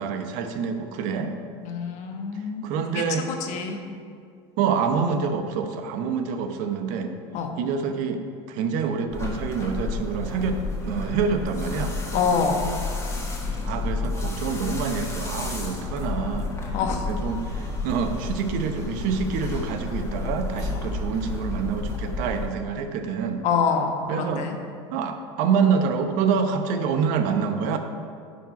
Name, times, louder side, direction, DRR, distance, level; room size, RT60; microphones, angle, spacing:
voice 1, 0.0-1.3 2.6-3.3 4.6-7.1 7.6-8.2 8.5-10.6 10.8-11.9 13.6-16.5 17.1-23.4 24.1-24.4 24.9-27.8, right 6 dB, 65° right, 6 dB, 0.8 m, -26 dB
voice 2, 1.6-2.7 2.9-3.0 3.4-3.8 7.3-7.5 12.1-12.7 16.7-17.1 23.4-24.6, left 5 dB, 55° left, 4 dB, 1.2 m, -25 dB
sound 1, 9.1-22.5, left 3 dB, 20° left, 1.7 m, -31 dB
10.0 x 4.8 x 5.2 m, 2.3 s
supercardioid pair, 100°, 15 cm